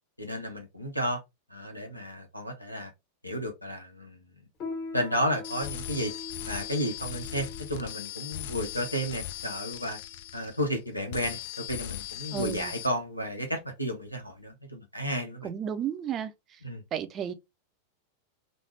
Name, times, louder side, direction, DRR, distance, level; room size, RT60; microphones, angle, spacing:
voice 1, 0.2-1.2 1.5-2.9 3.2-4.3 4.9-6.1 6.5-10.0 10.3-15.5 16.6-16.8, equal, 90° left, 0.7 m, -32 dB
Piano, 4.6-14.5, left 3 dB, 35° left, 1.0 m, -44 dB
sound 1, 5.4-10.8 11.1-12.9, left 14 dB, 55° left, 0.3 m, -39 dB
voice 2, 12.3-12.7 15.4-16.6 16.9-17.3, right 9 dB, 30° right, 0.4 m, -33 dB
3.1 x 2.0 x 3.1 m
figure-of-eight pair, 90°, 0 cm